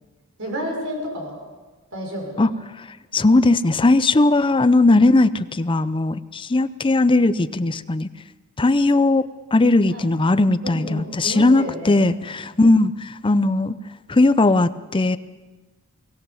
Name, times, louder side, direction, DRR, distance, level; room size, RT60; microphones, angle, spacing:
voice 1, 0.4-1.5 1.9-2.5 9.9-10.0 10.6-12.0, equal, 65° right, 1 dB, 5.9 m, -30 dB
voice 2, 3.1-8.1 8.6-9.2 9.5-13.7 14.1-15.2, left 2 dB, 25° left, 14 dB, 0.6 m, -18 dB
23.0 x 17.0 x 7.2 m, 1.3 s
head